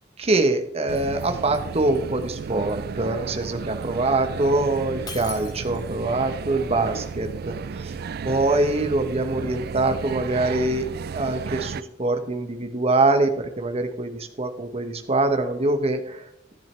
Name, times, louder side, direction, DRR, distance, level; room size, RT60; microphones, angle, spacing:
voice 1, 0.2-7.9 8.2-10.9 11.1-16.3, right 2 dB, 35° right, 8 dB, 1.0 m, -24 dB
sound 1, 0.9-11.8, right 5 dB, 55° right, 0.4 m, -33 dB
Shatter, 5.1-6.1, left 5 dB, 20° left, 1.3 m, -39 dB
11.5 x 10.5 x 3.3 m, 0.78 s
head